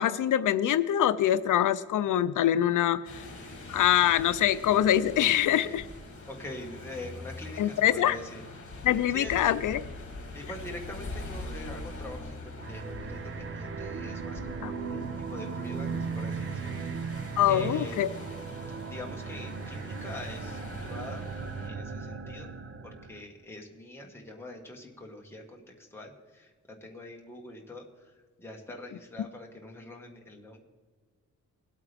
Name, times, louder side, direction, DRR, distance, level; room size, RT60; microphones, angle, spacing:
voice 1, 0.0-3.2 3.7-5.9 7.6-8.2 8.8-9.9 14.6-14.7 17.4-18.1, left 11 dB, 80° left, 14 dB, 0.5 m, -24 dB
sound 1, 3.0-21.7, left 2 dB, 45° left, 2.4 m, -44 dB
voice 2, 6.3-8.4 9.1-9.4 10.3-12.4 12.7-18.0 18.9-21.3 21.6-22.5 22.8-25.6 25.9-26.5 26.8-28.1 28.4-30.6, left 1 dB, 10° left, 0 dB, 1.5 m, -44 dB
sound 2, 12.6-23.2, right 5 dB, 45° right, 0.7 m, -37 dB
20.5 x 8.4 x 3.5 m, 1.5 s
wide cardioid pair, 175°, 31 cm